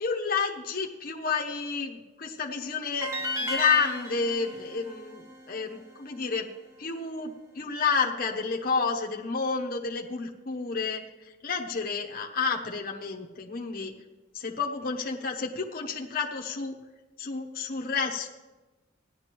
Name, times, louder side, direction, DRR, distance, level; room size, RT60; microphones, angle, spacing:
voice 1, 0.0-3.1 3.4-6.5 6.8-11.0 11.4-13.9 14.3-16.7 17.2-18.3, left 5 dB, 45° left, 0 dB, 0.9 m, -30 dB
sound 1, 3.0-6.2, left 1 dB, 15° right, 0.8 m, -35 dB
16.5 x 11.0 x 3.0 m, 1.2 s
head